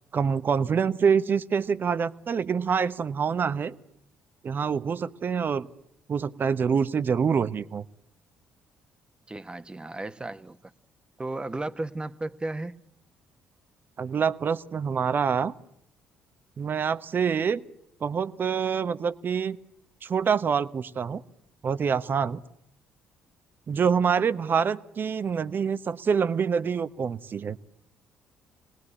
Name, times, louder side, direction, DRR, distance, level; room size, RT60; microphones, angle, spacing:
voice 1, 0.1-3.7 4.4-5.7 6.1-7.8 14.0-15.5 16.6-17.6 18.0-19.6 20.0-21.2 21.6-22.4 23.7-27.6, right 6 dB, 45° right, 14 dB, 1.0 m, -26 dB
voice 2, 9.3-10.7 11.2-12.8, right 2 dB, 20° right, 11 dB, 1.3 m, -34 dB
26.0 x 19.5 x 10.0 m, 0.76 s
hypercardioid pair, 50°, 5 cm